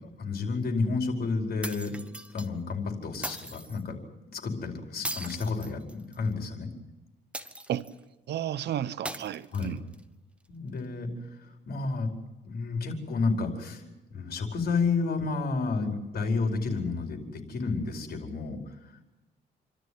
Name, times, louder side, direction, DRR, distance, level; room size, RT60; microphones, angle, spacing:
voice 1, 0.2-2.0 2.3-4.0 4.3-6.7 9.5-9.8 10.5-11.1 11.4-12.1 12.4-13.8 14.1-19.0, left 4 dB, 60° left, 4.9 m, -31 dB
sound 1, 1.6-2.5 3.2-3.8 5.0-6.3 7.3-8.0 9.1-10.0, right 1 dB, 5° right, 1.3 m, -39 dB
voice 2, 8.3-9.8, right 11 dB, 70° right, 1.0 m, -32 dB
28.5 x 13.0 x 9.6 m
cardioid pair, 110°, 18 cm